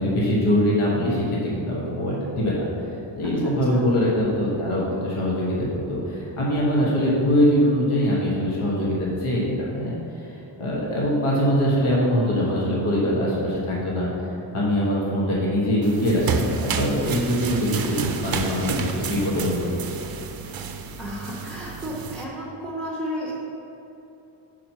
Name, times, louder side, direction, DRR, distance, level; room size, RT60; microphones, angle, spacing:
voice 1, 0.0-2.7 3.2-10.0 10.6-19.6, equal, 85° left, -5 dB, 1.4 m, -23 dB
voice 2, 3.2-3.9 21.0-23.3, equal, ahead, -6 dB, 0.7 m, -33 dB
sound 1, 15.8-22.2, right 5 dB, 50° right, 0.5 m, -30 dB
4.7 x 4.4 x 5.7 m, 3.0 s
wide cardioid pair, 160°, 49 cm